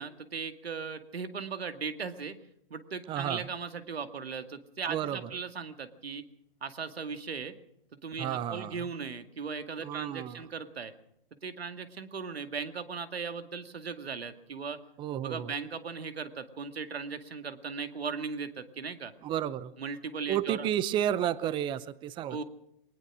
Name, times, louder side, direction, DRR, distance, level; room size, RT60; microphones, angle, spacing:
voice 1, 0.0-2.4 2.7-6.2 6.6-7.5 8.0-10.9 11.4-14.8 15.2-19.1 19.8-20.7 22.3-22.4, right 5 dB, 85° right, 9 dB, 2.2 m, -38 dB
voice 2, 3.1-3.4 4.9-5.2 8.2-8.7 9.8-10.4 15.0-15.5 19.2-19.7 20.3-22.4, right 10 dB, 15° right, 18 dB, 0.7 m, -31 dB
21.5 x 19.5 x 6.2 m, 0.77 s
hypercardioid pair, 135°, 30 cm